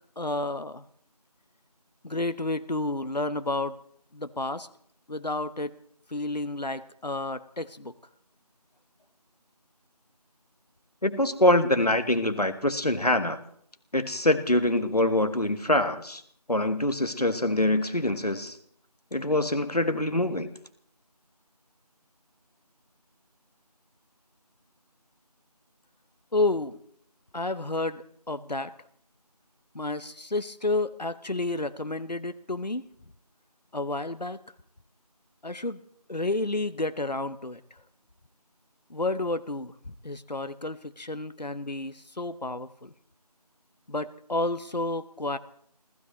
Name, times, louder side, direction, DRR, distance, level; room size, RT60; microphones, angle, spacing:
voice 1, 0.2-0.8 2.0-3.8 4.1-4.7 5.1-5.8 6.1-7.9 26.3-26.8 27.3-28.7 29.7-32.9 33.7-34.4 35.4-35.8 36.1-37.6 38.9-42.9 43.9-45.4, left 2 dB, 85° left, 13 dB, 1.0 m, -31 dB
voice 2, 11.0-13.4 13.9-16.2 16.5-18.6 19.1-20.5, left 1 dB, 70° left, 9 dB, 1.6 m, -24 dB
29.0 x 15.5 x 3.2 m, 0.64 s
figure-of-eight pair, 180°, 21 cm